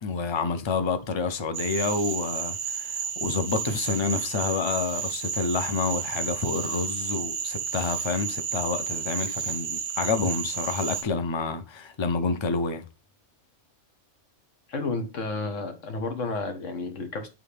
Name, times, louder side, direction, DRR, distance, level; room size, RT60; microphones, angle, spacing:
voice 1, 0.0-12.9, left 4 dB, 35° left, 0.5 m, -28 dB
Cricket / Frog, 1.5-11.0, right 6 dB, 55° right, 0.7 m, -32 dB
voice 2, 14.7-17.3, left 3 dB, 85° left, 1.6 m, -31 dB
9.1 x 3.7 x 3.4 m
omnidirectional pair, 1.3 m